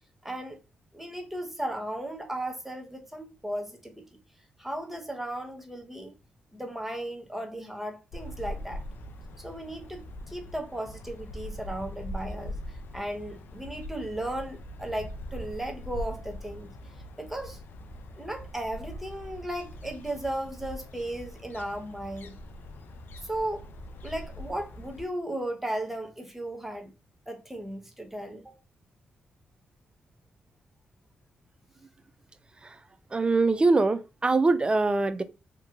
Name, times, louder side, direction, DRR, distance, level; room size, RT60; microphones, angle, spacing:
voice 1, 0.2-0.6 0.9-4.0 4.6-6.1 6.5-8.8 9.4-16.7 17.2-17.6 18.2-22.4 23.2-23.7 24.0-26.9 27.3-28.5, right 1 dB, 5° right, 0.8 m, -36 dB
sound 1, 8.1-25.1, left 1 dB, 65° left, 0.4 m, -42 dB
voice 2, 33.1-35.2, right 3 dB, 25° right, 0.4 m, -23 dB
2.9 x 2.2 x 2.3 m
supercardioid pair, 50°, 4 cm